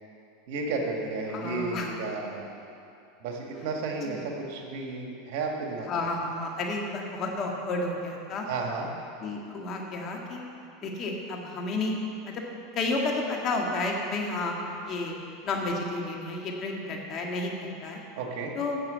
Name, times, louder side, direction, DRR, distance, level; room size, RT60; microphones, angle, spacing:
voice 1, 0.5-2.6 3.2-5.9 8.5-8.9 18.2-18.5, right 3 dB, 60° right, 1 dB, 1.9 m, -33 dB
voice 2, 1.3-1.9 4.0-4.3 5.9-8.5 9.2-10.4 10.8-12.4 12.7-14.6 14.8-15.2 15.4-18.0 18.5-18.8, left 2 dB, 40° left, 0 dB, 1.7 m, -31 dB
9.2 x 6.5 x 8.1 m, 2.6 s
supercardioid pair, 115°, 0 cm